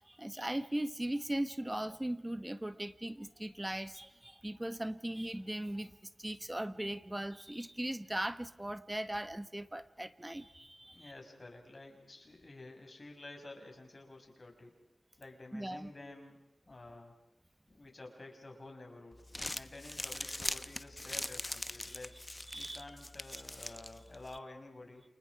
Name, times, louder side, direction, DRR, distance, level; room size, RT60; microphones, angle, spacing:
voice 1, 0.0-11.1 15.5-15.9 21.9-22.0 22.5-22.8, right 1 dB, 15° right, 12 dB, 1.3 m, -39 dB
voice 2, 10.8-14.7 15.2-17.1 17.7-19.2 19.5-22.2 22.5-25.0, left 2 dB, 40° left, 2 dB, 6.3 m, -51 dB
Crumpling crinkling, 19.1-24.4, left 1 dB, 25° left, 0.9 m, -42 dB
29.0 x 29.0 x 4.9 m, 0.92 s
wide cardioid pair, 65°, 0 cm